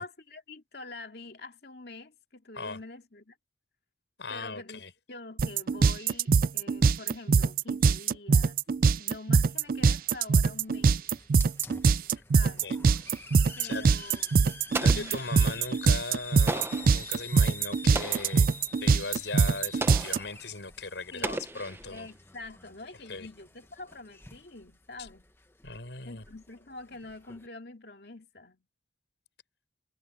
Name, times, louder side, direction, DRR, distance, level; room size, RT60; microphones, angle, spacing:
voice 1, 0.0-3.4 4.3-4.8 5.1-8.6 8.9-11.0 12.3-12.7 13.6-15.2 21.1-21.4 21.9-25.2 26.0-28.6, left 3 dB, 60° left, 2.4 m, -45 dB
voice 2, 4.2-4.9 12.2-12.8 13.6-13.8 14.7-22.1 23.1-23.3 25.0-25.1 25.6-26.2, left 3 dB, 80° left, 5.5 m, -39 dB
sound 1, 5.4-20.2, right 5 dB, 50° right, 0.4 m, -22 dB
Hiss, 9.6-27.5, left 3 dB, 15° left, 1.0 m, -48 dB
Explosion, 14.7-15.6 16.5-17.0 17.9-18.5 19.8-20.3 21.2-22.1, right 2 dB, 15° right, 0.6 m, -35 dB
head